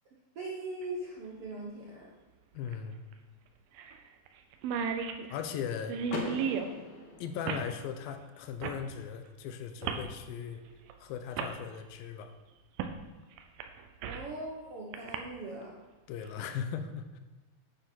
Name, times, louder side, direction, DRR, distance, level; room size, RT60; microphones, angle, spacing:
voice 1, 0.3-2.1 14.0-15.8, right 2 dB, 60° right, -3 dB, 1.5 m, -40 dB
sound 1, 0.8-0.9 2.7-2.8 3.1-3.2 3.8-4.0 4.3-4.4 4.5-6.7 7.5-7.7 8.6-8.8 9.8-10.1 10.9-11.0 11.4-11.5 12.8-13.0 13.4-14.3 14.9-15.2, right 6 dB, 85° right, 2.6 m, -34 dB
voice 2, 2.5-3.0 5.3-6.0 7.2-10.6 11.0-12.3 16.1-17.2, left 7 dB, 80° left, 8 dB, 2.5 m, -38 dB
Car / Door, 6.1-8.0, left 3 dB, 65° left, 2.8 m, -40 dB
9.6 x 8.8 x 4.5 m, 1.1 s
omnidirectional pair, 4.2 m